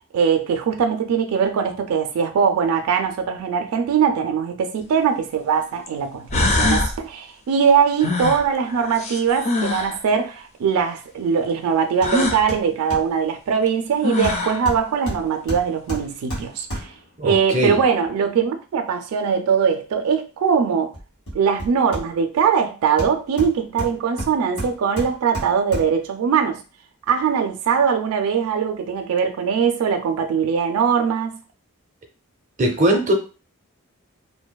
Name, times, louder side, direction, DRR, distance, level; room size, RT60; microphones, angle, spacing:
voice 1, 0.1-16.9 17.2-20.9 21.3-26.6 27.1-31.4, right 6 dB, 90° right, 0.3 m, -21 dB
sound 1, 4.8-4.9 5.9-6.0 6.3-6.9 8.0-10.0 12.0-12.4 13.7-13.8 14.0-14.6, left 2 dB, 30° left, 0.3 m, -23 dB
Hammer, 12.0-12.2 12.5-13.2 14.2-17.1 20.9-22.4 23.0-26.1 26.5-26.6, equal, 80° left, 1.4 m, -32 dB
voice 2, 17.2-17.8 32.6-33.1, right 1 dB, 35° right, 0.5 m, -20 dB
2.6 x 2.2 x 2.2 m
head